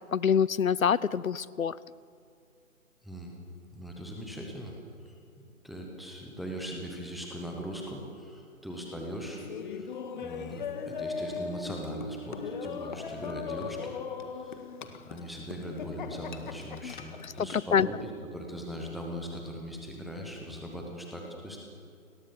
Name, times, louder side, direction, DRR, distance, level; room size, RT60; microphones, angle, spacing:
voice 1, 0.1-1.8 16.8-16.9 17.5-17.9, left 7 dB, 70° left, 20 dB, 0.8 m, -25 dB
voice 2, 3.0-3.4 3.7-4.7 5.0-9.4 9.7-13.9 14.4-14.5 15.1-21.6, equal, ahead, 0 dB, 0.9 m, -40 dB
Laughter, 9.4-17.5, left 5 dB, 35° left, 1.6 m, -39 dB
30.0 x 21.5 x 7.0 m, 2.4 s
figure-of-eight pair, 150°, 43 cm